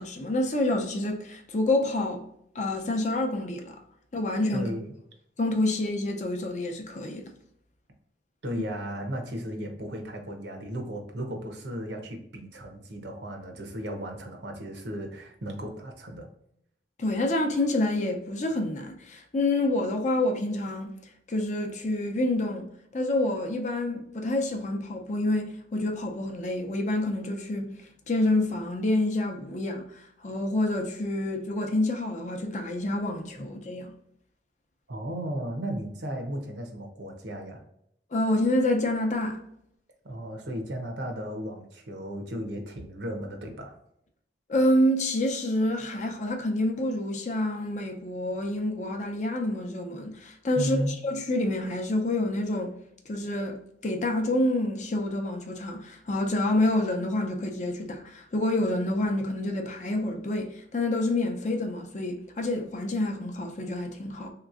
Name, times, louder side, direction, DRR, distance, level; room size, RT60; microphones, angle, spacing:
voice 1, 0.0-2.2 2.5-3.7 4.1-4.7 5.4-7.3 17.0-20.9 21.3-22.7 22.9-27.7 28.1-33.9 38.1-39.4 44.5-52.7 53.1-64.3, left 1 dB, 40° left, 0.5 m, -28 dB
voice 2, 4.5-4.9 8.4-16.3 33.4-33.5 34.9-37.6 40.0-43.8 50.6-50.9, equal, 75° right, 0.8 m, -35 dB
3.4 x 2.9 x 2.4 m
head